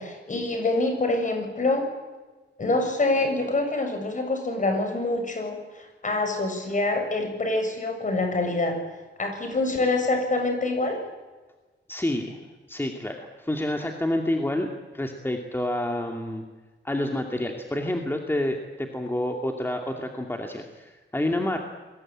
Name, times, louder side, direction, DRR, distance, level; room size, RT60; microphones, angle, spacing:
voice 1, 0.0-1.9 2.6-8.8 9.2-11.0, left 2 dB, 40° left, 5 dB, 7.0 m, -26 dB
voice 2, 11.9-12.4 12.7-14.7 14.9-16.4 16.8-21.6, left 1 dB, 10° left, 2 dB, 2.4 m, -28 dB
29.5 x 22.0 x 8.9 m, 1.3 s
wide cardioid pair, 135°, 20 cm